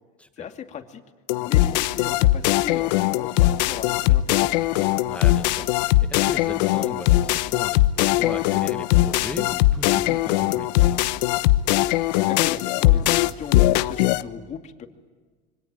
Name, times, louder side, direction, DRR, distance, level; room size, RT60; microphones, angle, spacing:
voice 1, 0.4-1.0 1.4-4.7 11.8-14.9, left 8 dB, 35° left, 6 dB, 2.5 m, -37 dB
sound 1, 1.3-14.2, left 16 dB, 90° left, 1.1 m, -20 dB
voice 2, 5.0-10.9, left 2 dB, 5° left, 8 dB, 1.2 m, -38 dB
27.0 x 24.5 x 9.0 m, 1.5 s
cardioid pair, 145°, 21 cm